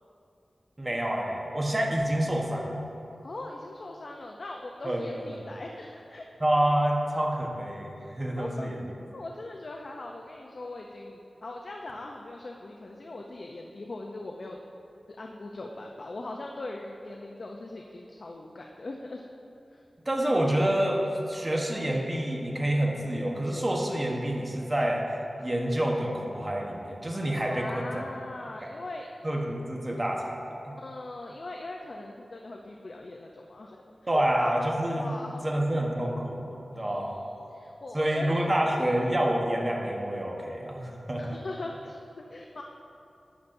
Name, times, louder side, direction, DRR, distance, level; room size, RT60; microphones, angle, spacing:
voice 1, 0.8-2.8 4.8-5.2 6.4-8.8 20.0-21.0 21.3-25.0 25.4-28.0 28.6-28.7 29.2-30.4 34.1-35.2 35.4-37.2 37.9-41.4, right 1 dB, 25° right, -1 dB, 1.1 m, -28 dB
voice 2, 3.2-6.2 8.4-8.7 9.1-14.6 15.1-19.2 19.7-19.8 27.5-29.2 30.8-33.9 34.1-34.2 34.9-35.9 36.7-38.4 38.8-38.9 41.2-42.6, left 2 dB, 55° left, 1 dB, 0.5 m, -41 dB
12.0 x 8.2 x 2.6 m, 2.8 s
wide cardioid pair, 105°, 0 cm